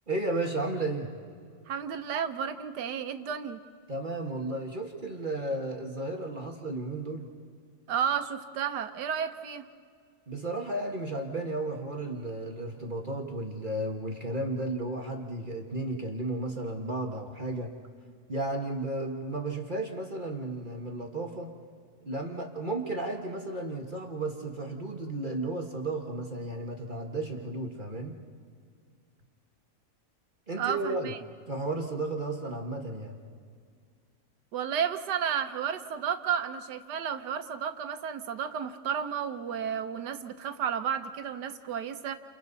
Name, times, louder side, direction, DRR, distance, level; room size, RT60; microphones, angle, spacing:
voice 1, 0.1-1.1 3.9-7.3 10.3-17.7 18.3-21.5 22.0-28.1 30.5-31.1 31.5-33.2, right 2 dB, 30° right, 2 dB, 1.6 m, -33 dB
voice 2, 1.7-3.6 7.9-9.7 30.6-31.2 34.5-42.1, right 8 dB, 85° right, 9 dB, 1.5 m, -32 dB
29.5 x 28.5 x 4.1 m, 2.1 s
omnidirectional pair, 1.7 m